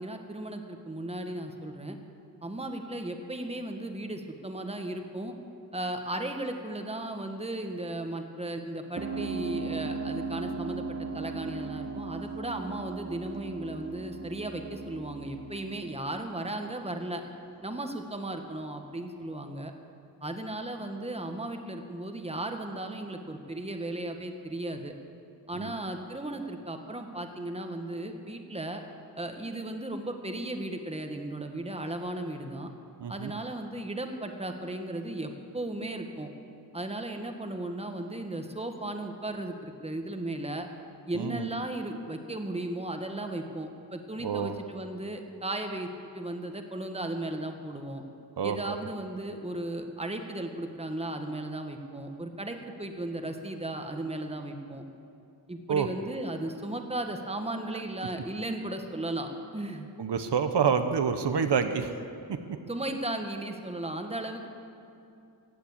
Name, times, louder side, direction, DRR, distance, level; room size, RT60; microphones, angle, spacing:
voice 1, 0.0-2.0 2.4-5.4 5.7-17.2 17.6-19.7 20.2-24.9 25.5-28.8 29.2-32.7 33.1-36.3 36.7-40.7 41.1-45.9 46.1-48.0 48.4-54.8 55.5-59.9 62.7-64.5, right 1 dB, 15° right, 5 dB, 1.3 m, -36 dB
sound 1, 9.0-17.1, right 4 dB, 40° right, 1.2 m, -37 dB
voice 2, 33.0-33.3 41.1-41.5 44.2-44.5 48.4-48.7 55.7-55.9 60.0-61.9, right 6 dB, 75° right, 8 dB, 0.9 m, -27 dB
15.5 x 8.8 x 8.5 m, 2.6 s
wide cardioid pair, 95°, 41 cm